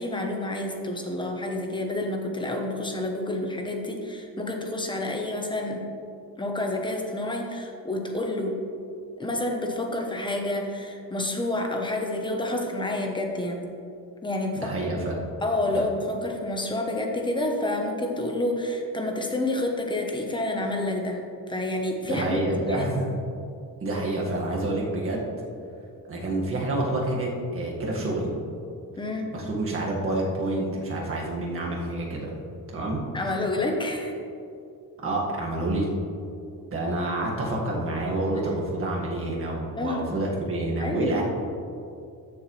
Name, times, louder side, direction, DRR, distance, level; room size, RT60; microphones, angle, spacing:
voice 1, 0.0-5.8 6.4-8.6 9.2-13.6 14.2-14.7 15.4-22.4 22.7-23.0 29.0-29.4 33.1-34.1 39.7-40.3 40.8-41.2, left 1 dB, 10° left, 2 dB, 0.9 m, -29 dB
voice 2, 14.5-15.2 15.7-15.8 22.0-23.1 23.8-25.2 26.1-28.4 29.3-32.3 32.7-33.0 35.0-35.9 36.7-41.2, right 2 dB, 35° right, -3 dB, 1.8 m, -28 dB
13.5 x 7.2 x 3.2 m, 2.6 s
cardioid pair, 170°, 39 cm